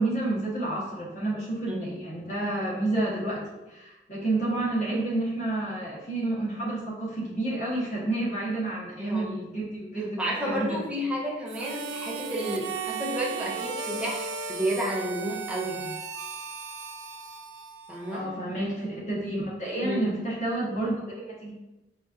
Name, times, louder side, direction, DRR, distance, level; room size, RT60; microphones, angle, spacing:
voice 1, 0.0-10.8 18.1-21.5, right 2 dB, 45° left, -5 dB, 1.0 m, -30 dB
voice 2, 9.0-9.3 10.2-15.9 17.9-18.3 19.8-20.1, equal, 5° right, -4 dB, 0.6 m, -31 dB
Harmonica, 11.5-18.4, right 5 dB, 90° right, 0.3 m, -36 dB
4.0 x 2.4 x 2.4 m, 1.0 s
head